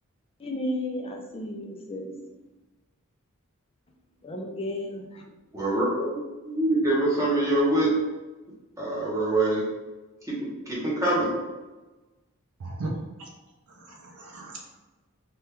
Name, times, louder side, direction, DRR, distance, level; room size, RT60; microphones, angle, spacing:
voice 1, 0.4-2.2 4.2-5.2, left 1 dB, 25° left, 1 dB, 0.4 m, -33 dB
voice 2, 5.5-7.9 8.8-9.6 10.3-11.3, right 1 dB, 15° right, -6 dB, 0.8 m, -25 dB
voice 3, 12.6-12.9 13.2-13.3 13.7-14.8, right 2 dB, 75° right, 0 dB, 0.5 m, -37 dB
2.9 x 2.3 x 3.3 m, 1.2 s
head